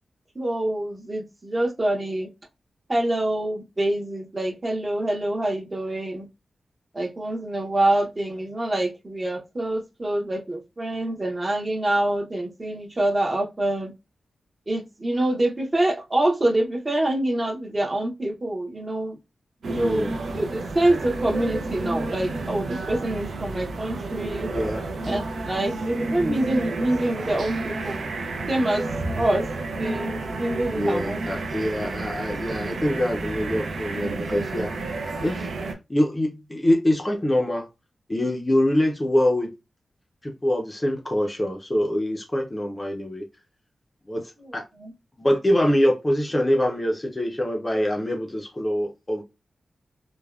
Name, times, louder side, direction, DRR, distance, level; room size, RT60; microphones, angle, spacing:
voice 1, 0.4-2.3 2.9-6.3 6.9-13.9 14.7-19.2 19.7-24.5 25.1-28.0 28.5-28.9 29.2-31.3 44.4-44.9, right 1 dB, 30° right, 0.6 m, -26 dB
sound 1, 19.6-35.7, right 3 dB, 85° right, 0.4 m, -31 dB
voice 2, 19.7-20.2 24.5-24.8 30.7-34.7 35.2-35.5 35.9-37.7 38.1-39.5 40.2-43.3 44.1-44.2 44.5-44.6 45.2-49.2, left 1 dB, 20° left, 0.4 m, -24 dB
3.3 x 2.1 x 2.2 m
wide cardioid pair, 120°, 0 cm